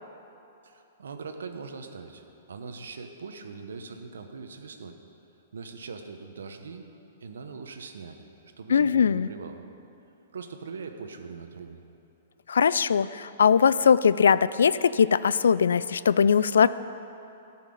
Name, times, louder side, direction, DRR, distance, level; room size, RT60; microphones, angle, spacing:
voice 1, 0.6-5.0 5.5-6.8 7.2-8.2 8.6-9.6 10.3-11.8, right 5 dB, 85° right, 6 dB, 1.0 m, -41 dB
voice 2, 8.7-9.3 12.5-16.7, left 6 dB, 85° left, 17 dB, 0.3 m, -21 dB
12.5 x 5.7 x 8.5 m, 2.9 s
hypercardioid pair, 135°, 0 cm